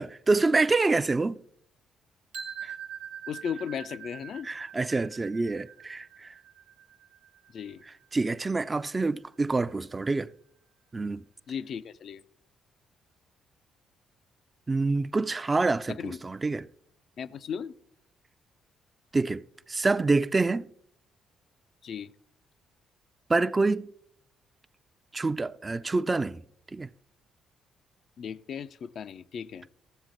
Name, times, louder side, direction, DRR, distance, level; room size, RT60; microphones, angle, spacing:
voice 1, 0.0-1.4 2.6-2.7 4.4-6.3 8.1-10.3 10.9-11.2 14.7-16.7 19.1-20.7 23.3-23.9 25.1-26.4 26.7-26.9, right 3 dB, 30° right, 0.4 m, -27 dB
sound 1, 2.3-8.3, right 8 dB, 85° right, 1.1 m, -44 dB
voice 2, 3.3-4.5 7.5-7.8 11.5-12.2 15.9-16.2 17.2-17.7 21.8-22.1 28.2-29.7, left 7 dB, 60° left, 0.4 m, -36 dB
15.0 x 7.4 x 3.9 m
hypercardioid pair, 45°, 0 cm